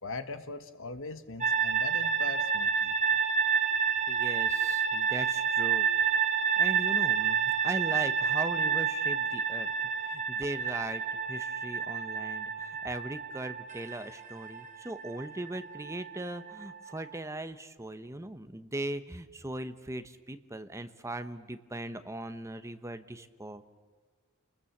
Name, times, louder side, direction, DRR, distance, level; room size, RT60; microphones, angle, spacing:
voice 1, 0.0-2.9, left 3 dB, 65° left, 9 dB, 1.5 m, -40 dB
sound 1, 1.4-17.2, right 7 dB, 35° right, 1.6 m, -29 dB
voice 2, 4.1-5.9 6.6-23.7, right 1 dB, 15° right, 9 dB, 1.1 m, -39 dB
29.5 x 20.5 x 7.3 m, 1.5 s
head